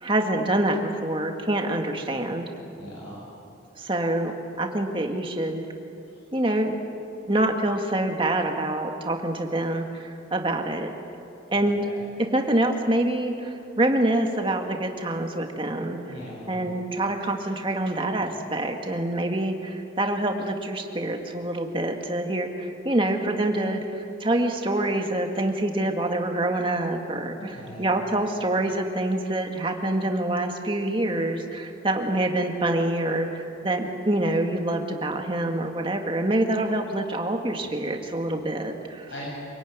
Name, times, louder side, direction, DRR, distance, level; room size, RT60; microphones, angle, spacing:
voice 1, 0.0-2.4 3.8-5.6 6.3-6.8 7.3-10.9 11.5-11.8 12.2-16.0 16.5-39.1, right 1 dB, 25° right, 3 dB, 1.9 m, -26 dB
voice 2, 2.7-3.2 6.0-6.2 11.8-12.0 16.1-16.6 27.4-27.9 39.1-39.3, equal, 80° left, -5 dB, 7.8 m, -40 dB
26.5 x 18.5 x 9.4 m, 2.8 s
head